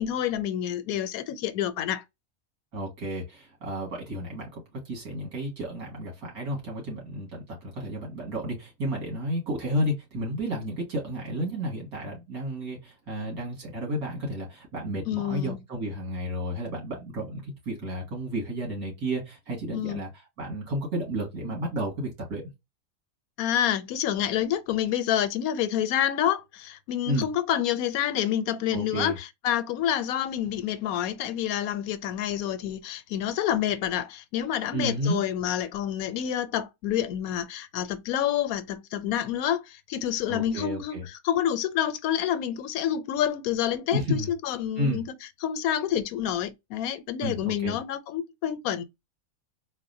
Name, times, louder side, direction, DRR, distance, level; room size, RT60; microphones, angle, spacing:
voice 1, 0.0-2.0 15.1-15.6 19.7-20.0 23.4-45.1 45.4-48.8, left 10 dB, 80° left, 1.0 m, -28 dB
voice 2, 2.7-20.1 20.4-22.5 27.1-27.3 28.7-29.2 34.7-35.2 40.3-41.0 43.9-44.3 44.8-45.0 47.2-47.8, equal, 80° right, 2.3 m, -32 dB
4.0 x 2.1 x 2.6 m
omnidirectional pair, 1.5 m